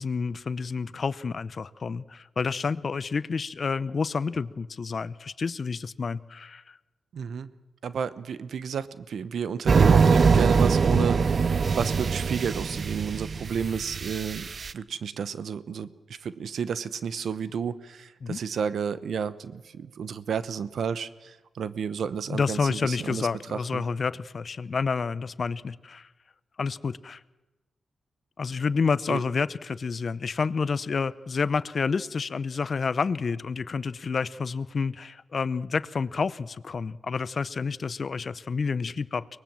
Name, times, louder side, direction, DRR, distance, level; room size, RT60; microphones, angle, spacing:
voice 1, 0.0-6.8 10.9-11.1 18.2-18.4 22.3-26.1 26.6-27.2 28.4-39.3, left 5 dB, 55° left, 16 dB, 0.7 m, -29 dB
voice 2, 7.1-7.5 7.8-11.2 11.8-14.5 14.7-23.8 29.1-29.2, right 7 dB, 80° right, 15 dB, 0.9 m, -31 dB
sound 1, 9.7-14.7, right 5 dB, 55° right, 0.6 m, -22 dB
23.0 x 19.5 x 7.6 m, 1.1 s
cardioid pair, 65°, 0 cm